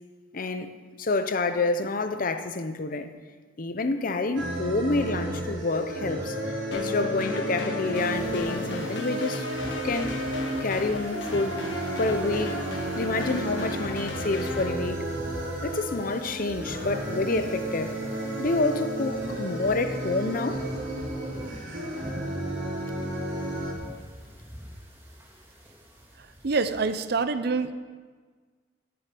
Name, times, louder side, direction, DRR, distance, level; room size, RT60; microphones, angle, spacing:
voice 1, 0.3-0.7 1.0-3.1 3.6-9.4 9.8-10.2 10.6-11.6 12.0-12.6 13.0-15.0 15.6-18.0 18.4-20.7, left 3 dB, 50° left, 0.7 m, -28 dB
sound 1, 4.4-23.7, right 1 dB, 80° right, 3.0 m, -33 dB
sound 2, 6.7-14.7, left 2 dB, 70° left, 1.5 m, -36 dB
sound 3, 7.8-27.1, equal, 15° right, 2.0 m, -46 dB
voice 2, 26.2-27.7, right 4 dB, 55° right, 0.6 m, -26 dB
10.0 x 6.5 x 8.4 m
head